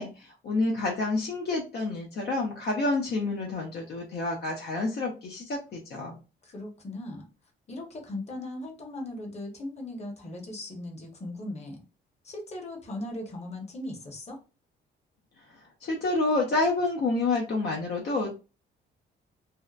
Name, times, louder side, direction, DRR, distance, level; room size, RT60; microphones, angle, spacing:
voice 1, 0.0-6.2 15.5-18.3, left 2 dB, 55° left, -1 dB, 0.6 m, -29 dB
voice 2, 6.4-7.2 7.7-11.8 12.2-14.4, left 1 dB, 35° left, 1 dB, 0.9 m, -38 dB
2.7 x 2.1 x 2.4 m, 0.32 s
cardioid pair, 90°, 20 cm